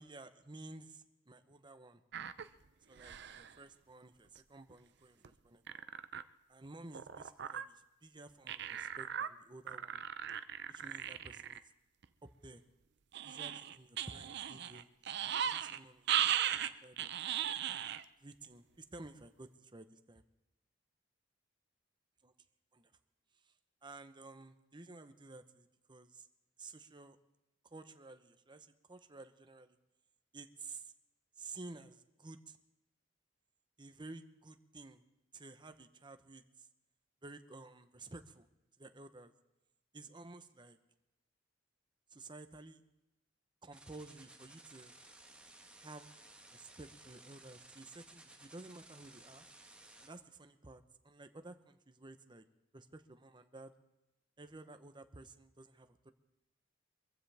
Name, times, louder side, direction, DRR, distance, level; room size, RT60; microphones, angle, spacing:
voice 1, 0.0-2.0 2.9-5.8 6.5-10.0 10.7-11.6 12.2-12.6 13.2-17.5 18.2-20.2 22.2-22.3 22.7-22.9 23.4-23.5 23.8-26.3 26.6-27.2 27.7-29.8 30.3-30.9 31.4-32.6 33.8-35.0 35.3-36.7 37.2-38.5 38.8-39.3 39.9-40.8 42.1-42.8 43.6-45.0 45.8-46.1 46.5-49.5 50.0-52.4 52.7-53.7 54.4-56.1, right 3 dB, 25° right, 9 dB, 0.9 m, -53 dB
sound 1, 2.1-2.5 3.0-3.5 4.4-4.5 4.7-4.8 5.2-5.3 5.7-6.2 6.9-7.7 8.5-9.3 9.7-11.6 12.0-12.1 13.1-15.8 16.1-18.0 18.4-18.5, right 10 dB, 65° right, 0.6 m, -37 dB
sound 2, 43.7-50.1, right 2 dB, 5° right, 1.5 m, -58 dB
23.5 x 15.0 x 3.5 m, 0.92 s
head